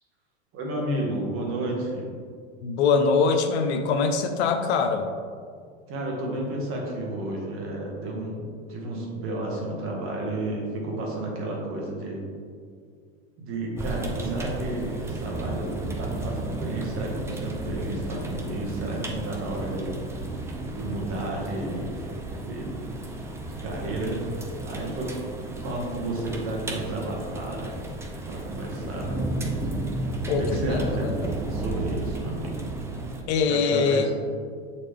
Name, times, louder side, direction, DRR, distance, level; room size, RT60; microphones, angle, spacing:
voice 1, 0.5-2.1 5.9-12.2 13.4-19.9 20.7-21.9 22.4-22.9 23.4-25.2 25.6-27.8 28.2-29.2 30.4-31.1 31.4-32.6 33.5-34.0, right 1 dB, 40° right, -1 dB, 1.6 m, -32 dB
voice 2, 2.6-5.1 30.3-31.3 33.3-34.1, left 5 dB, 75° left, 6 dB, 0.7 m, -23 dB
sound 1, 13.7-33.2, right 2 dB, 10° right, 0.4 m, -33 dB
7.4 x 4.2 x 3.4 m, 2.1 s
supercardioid pair, 135°, 33 cm